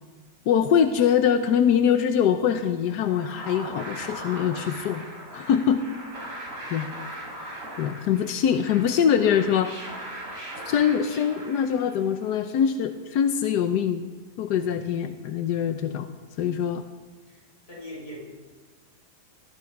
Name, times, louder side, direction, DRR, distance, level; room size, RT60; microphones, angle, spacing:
voice 1, 0.5-5.0 5.3-5.9 6.7-6.9 7.8-9.7 10.7-14.1 14.4-16.1 16.4-16.8, left 8 dB, 90° left, 8 dB, 1.3 m, -23 dB
sound 1, 2.8-12.2, right 1 dB, 55° right, 4.1 m, -39 dB
voice 2, 6.3-6.7 14.6-14.8 17.3-18.2, equal, 35° left, -4 dB, 6.4 m, -44 dB
19.5 x 12.5 x 4.7 m, 1.4 s
omnidirectional pair, 1.7 m